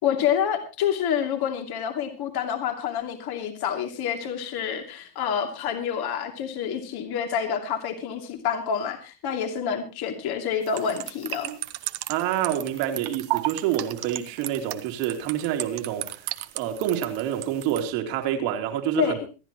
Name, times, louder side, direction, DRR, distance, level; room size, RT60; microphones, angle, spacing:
voice 1, 0.0-11.5 19.0-19.2, left 8 dB, 50° left, 2.8 m, -28 dB
sound 1, 10.7-17.8, right 16 dB, 50° right, 1.3 m, -34 dB
voice 2, 12.1-16.3 16.5-19.2, right 11 dB, 75° right, 3.3 m, -27 dB
25.5 x 10.5 x 3.0 m
supercardioid pair, 125°, 49 cm